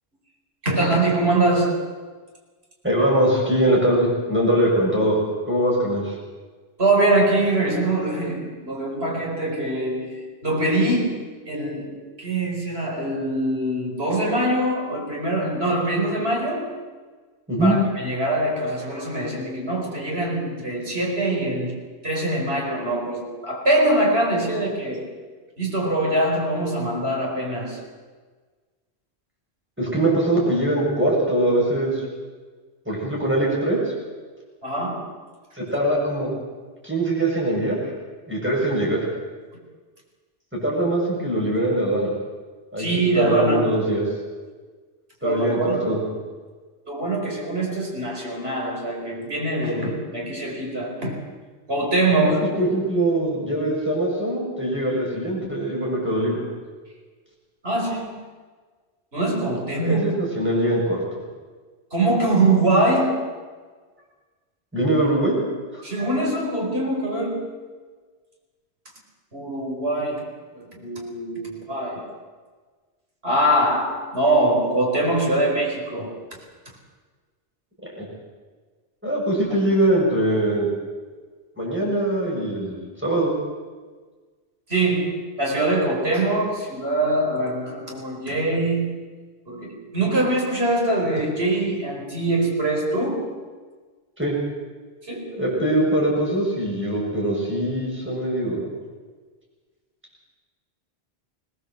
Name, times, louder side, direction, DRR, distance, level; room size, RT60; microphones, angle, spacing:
voice 1, 0.6-1.9 6.8-16.8 17.6-25.1 25.6-27.8 34.6-35.1 42.8-43.7 45.2-46.0 46.9-51.2 51.7-52.5 57.6-58.2 59.1-60.2 61.9-63.3 65.8-67.7 69.3-72.1 73.2-76.2 84.7-88.8 89.5-93.3 95.1-95.4, right 2 dB, 70° right, 0 dB, 5.1 m, -23 dB
voice 2, 2.8-6.1 17.5-17.8 29.8-32.0 32.9-33.9 35.5-36.3 36.8-37.8 38.3-39.0 40.5-42.1 42.7-44.0 45.2-46.0 52.2-56.5 59.8-61.0 64.7-65.4 65.7-65.8 78.0-78.1 79.0-80.7 81.6-83.4 94.2-94.3 95.3-98.7, right 1 dB, 10° right, -4 dB, 7.1 m, -22 dB
21.5 x 18.5 x 7.8 m, 1.4 s
omnidirectional pair, 1.1 m